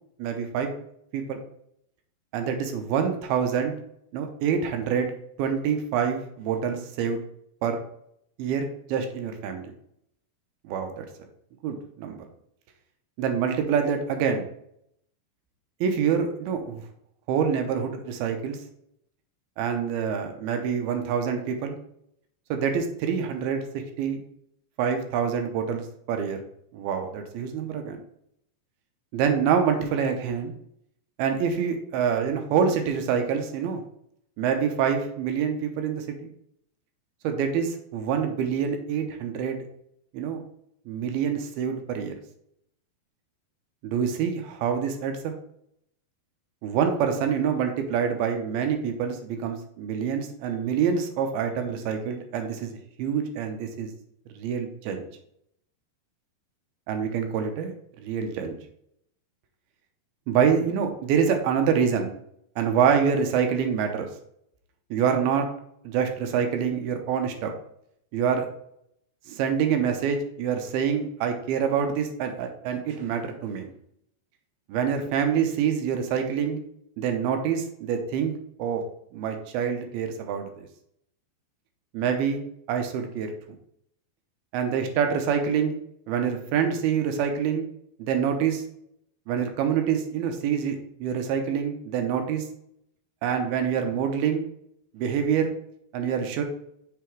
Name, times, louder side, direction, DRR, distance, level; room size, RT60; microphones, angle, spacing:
voice 1, 0.2-0.7 1.1-1.4 2.3-3.7 4.1-5.1 5.4-7.2 7.6-7.8 8.4-9.7 10.6-11.1 11.6-12.2 13.2-14.5 15.8-16.8 17.3-18.6 19.6-21.8 22.5-23.6 24.0-24.2 24.8-26.4 26.7-28.0 29.1-30.5 31.2-33.8 34.4-36.3 37.2-39.6 40.1-40.4 40.9-42.1 43.8-45.3 46.6-52.7 53.0-53.9 54.4-55.1 56.9-57.7 58.0-58.6 60.3-62.1 62.6-64.1 64.9-65.5 65.8-67.5 68.1-68.5 69.3-73.7 74.7-76.6 77.0-78.3 78.6-78.8 79.1-80.7 81.9-82.4 82.7-83.3 84.5-85.8 86.1-87.7 88.0-88.6 89.3-92.5 93.2-94.5 94.9-95.5 95.9-96.4, right 7 dB, 90° right, 5 dB, 2.8 m, -26 dB
6.8 x 3.4 x 4.6 m, 0.73 s
omnidirectional pair, 4.3 m